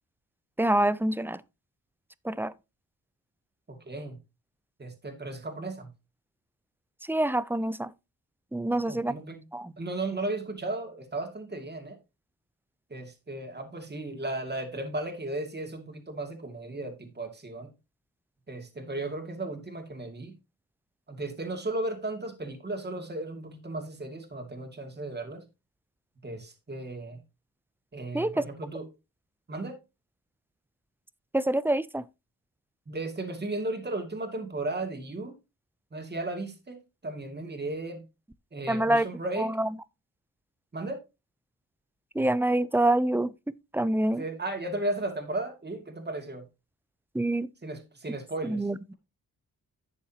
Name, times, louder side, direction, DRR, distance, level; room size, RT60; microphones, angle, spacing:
voice 1, 0.6-1.4 2.2-2.5 7.1-7.9 8.5-9.1 9.5-9.7 28.1-28.4 31.3-32.0 38.7-39.1 39.4-39.7 42.1-43.3 43.7-44.2 47.1-47.5 48.4-48.8, right 1 dB, 5° right, 0.5 m, -26 dB
voice 2, 3.7-4.2 4.8-5.9 8.7-9.4 9.8-12.0 12.9-17.7 18.5-20.3 21.1-25.4 26.2-27.2 27.9-28.9 29.5-29.8 32.9-35.3 35.9-38.0 38.5-39.5 40.7-41.0 44.2-46.4 47.6-48.7, right 2 dB, 30° right, 2.4 m, -35 dB
11.5 x 7.1 x 2.9 m
cardioid pair, 65°, 35 cm